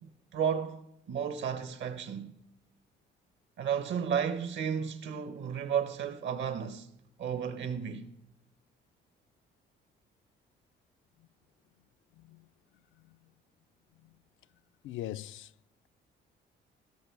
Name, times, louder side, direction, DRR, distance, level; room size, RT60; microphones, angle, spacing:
voice 1, 0.0-0.8 1.1-2.3 3.6-6.9 7.2-8.1, right 7 dB, 70° right, 1.0 m, -33 dB
voice 2, 12.1-12.5 13.0-13.2 14.0-14.2 14.8-15.5, left 13 dB, 75° left, 0.4 m, -42 dB
16.0 x 6.7 x 4.6 m
cardioid pair, 90°, 20 cm